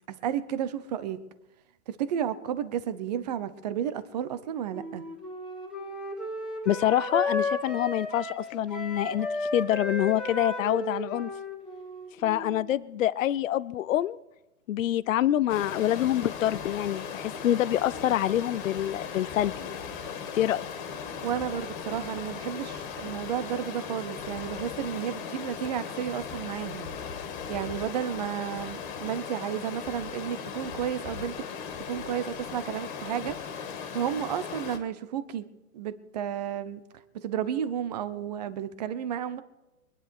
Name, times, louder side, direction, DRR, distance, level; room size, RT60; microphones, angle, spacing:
voice 1, 0.1-1.2 1.9-5.0 21.2-26.9 27.5-31.4 31.9-33.4 33.9-35.5 35.7-36.8 37.1-39.4, right 9 dB, 30° right, 14 dB, 0.8 m, -32 dB
Wind instrument woodwind instrument, 4.7-12.7, left 2 dB, ahead, 1.9 m, -34 dB
voice 2, 6.7-11.3 12.2-14.2 14.7-19.8 20.3-20.6, left 12 dB, 60° left, 16 dB, 0.6 m, -26 dB
Stream, 15.5-34.8, left 6 dB, 30° left, 2.1 m, -38 dB
24.0 x 10.5 x 4.6 m, 0.97 s
hypercardioid pair, 155°, 45 cm